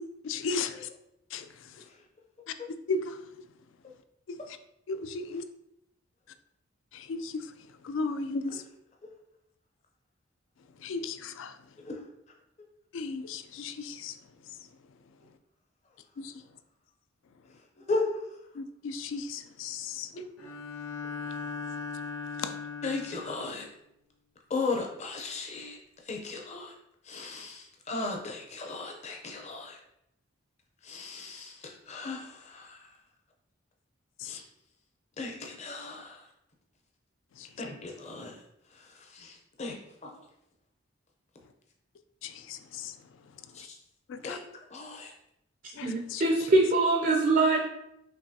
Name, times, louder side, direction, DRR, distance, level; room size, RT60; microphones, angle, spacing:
voice 1, 0.2-0.9 1.3-1.5 2.5-2.6 2.9-3.2 4.5-4.6 4.9-5.4 6.9-7.5 7.8-8.6 10.8-11.5 12.9-14.2 16.2-16.3 18.5-20.1 22.4-22.5 34.2-34.4 37.4-37.5 42.2-43.0 44.1-44.4 45.8-46.2, left 4 dB, 65° left, 11 dB, 0.3 m, -35 dB
Bowed string instrument, 20.4-23.5, left 4 dB, 85° left, 0.9 m, -38 dB
voice 2, 22.8-23.7 24.5-25.8 26.1-26.7 27.1-29.8 30.8-32.8 34.2-34.4 35.2-36.2 37.6-38.4 38.8-40.1 43.5-43.7 44.2-44.4 44.7-45.1, left 3 dB, 30° left, 1 dB, 0.6 m, -36 dB
voice 3, 45.8-47.7, right 2 dB, 40° right, 1 dB, 0.4 m, -23 dB
5.3 x 3.0 x 2.8 m, 0.80 s
head